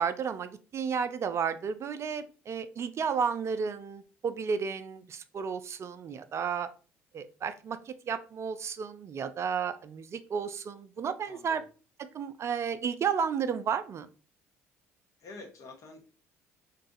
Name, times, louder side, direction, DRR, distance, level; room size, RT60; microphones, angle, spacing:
voice 1, 0.0-6.7 7.1-11.6 12.0-14.1, right 6 dB, 40° right, 11 dB, 0.4 m, -32 dB
voice 2, 11.2-11.6 15.2-16.0, left 3 dB, 50° left, 3 dB, 1.1 m, -47 dB
2.6 x 2.4 x 3.8 m, 0.36 s
hypercardioid pair, 55°, 7 cm